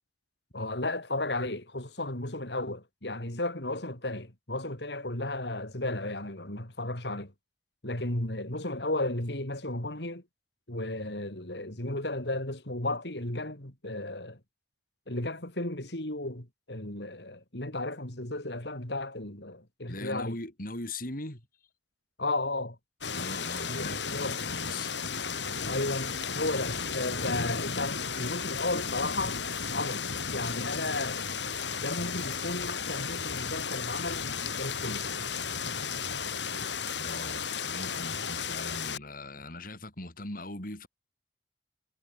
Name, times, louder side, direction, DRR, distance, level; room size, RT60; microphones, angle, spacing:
voice 1, 0.5-7.3 7.8-10.2 10.7-14.4 15.1-20.4 22.2-22.8 23.6-23.9 24.1-24.4 25.6-29.4 29.7-31.2 31.8-34.2 34.6-35.1, left 2 dB, 70° left, 4.5 m, -34 dB
voice 2, 19.9-21.4 23.1-25.0 37.0-40.9, left 2 dB, 50° left, 5.9 m, -40 dB
sound 1, 23.0-39.0, left 6 dB, 90° left, 7.5 m, -34 dB
head